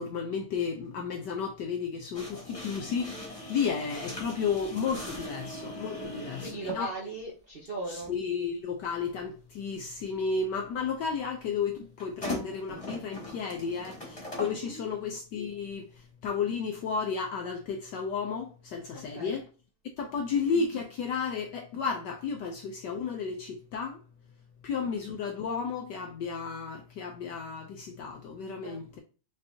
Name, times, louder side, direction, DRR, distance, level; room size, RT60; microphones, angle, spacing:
voice 1, 0.0-6.9 7.9-19.5 20.0-24.0 24.6-29.0, left 5 dB, 75° left, 1.0 m, -33 dB
sound 1, 2.1-6.9 8.0-8.1 12.0-14.6, left 1 dB, 20° left, 1.2 m, -40 dB
voice 2, 6.0-8.1 14.6-14.9 18.9-19.4 28.6-29.0, right 3 dB, 50° right, 0.6 m, -39 dB
5.2 x 3.2 x 2.7 m
omnidirectional pair, 2.4 m